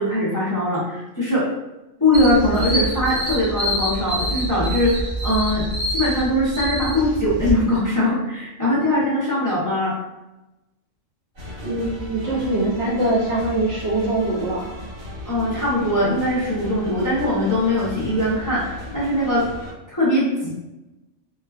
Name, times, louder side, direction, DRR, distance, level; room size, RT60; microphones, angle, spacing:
voice 1, 0.0-1.4 2.0-5.6 5.9-9.9 15.3-19.4 19.9-20.5, left 1 dB, 20° left, -10 dB, 0.6 m, -21 dB
sound 1, 2.1-7.5, right 1 dB, 30° right, 0.8 m, -26 dB
sound 2, 11.3-19.7, left 1 dB, 80° right, 1.6 m, -36 dB
voice 2, 11.6-14.7, right 2 dB, 60° right, -4 dB, 0.7 m, -23 dB
3.1 x 2.2 x 2.3 m, 1.0 s
omnidirectional pair, 1.3 m